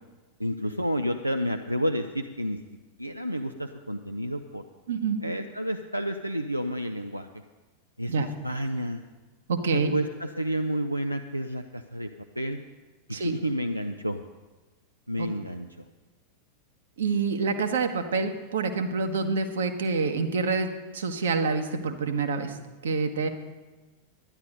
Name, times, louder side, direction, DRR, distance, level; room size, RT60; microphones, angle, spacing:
voice 1, 0.4-2.6 3.0-4.6 5.2-7.3 8.0-9.0 9.7-12.1 12.4-12.6 13.1-14.2 15.1-15.7, equal, 90° right, 6 dB, 0.5 m, -30 dB
voice 2, 4.9-5.2 8.1-8.3 9.5-9.9 13.1-13.3 15.2-15.3 17.0-20.7 20.9-22.5 22.8-23.3, right 4 dB, 65° right, 6 dB, 1.2 m, -27 dB
11.5 x 10.5 x 5.3 m, 1.2 s
figure-of-eight pair, 90°, 0 cm